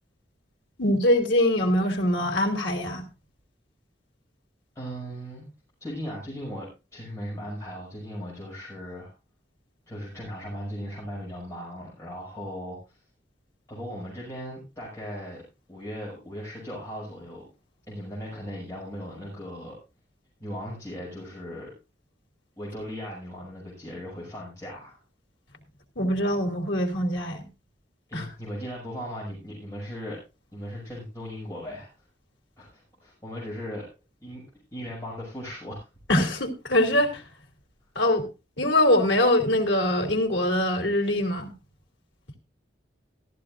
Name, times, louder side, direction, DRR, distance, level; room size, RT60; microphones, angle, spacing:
voice 1, 0.8-3.1 25.9-27.5 28.1-28.3 36.1-37.2 37.9-38.2 38.6-41.5, left 1 dB, 80° left, 3.3 m, -23 dB
voice 2, 4.7-5.5 5.8-9.1 9.9-13.0 13.7-15.4 15.7-17.4 17.9-19.8 20.4-21.7 22.6-25.0 28.1-30.2 30.5-31.9 32.6-33.9 34.2-34.4 34.7-35.9, equal, 15° left, 6.5 m, -37 dB
15.0 x 14.5 x 2.6 m
head